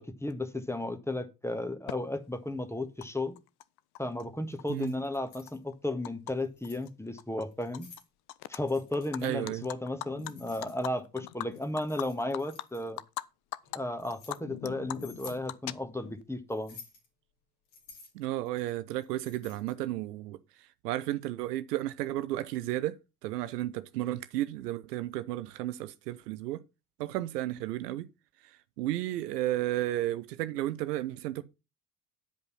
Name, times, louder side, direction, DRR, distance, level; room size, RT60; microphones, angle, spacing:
voice 1, 0.0-3.3 4.0-7.9 8.5-13.0 13.7-16.8, left 1 dB, 5° left, 1.6 m, -34 dB
Animal, 1.9-2.0 3.0-3.1 3.4-4.2 4.6-6.3 6.6-6.9 7.2-8.0 8.3-8.6 8.9-13.2 13.5-13.8 14.1-16.2, left 16 dB, 50° left, 0.7 m, -41 dB
Keys jangling, 4.5-5.6 6.3-6.9 7.5-8.1 8.6-9.3 10.2-11.0 11.5-13.0 13.6-14.4 14.9-15.4 16.5-17.1 17.7-19.8, left 4 dB, 70° left, 3.1 m, -53 dB
voice 2, 9.2-9.7 18.1-26.6 27.0-28.1 28.4-31.4, right 14 dB, 75° right, 0.7 m, -33 dB
10.5 x 5.3 x 5.6 m
figure-of-eight pair, 50°, 48 cm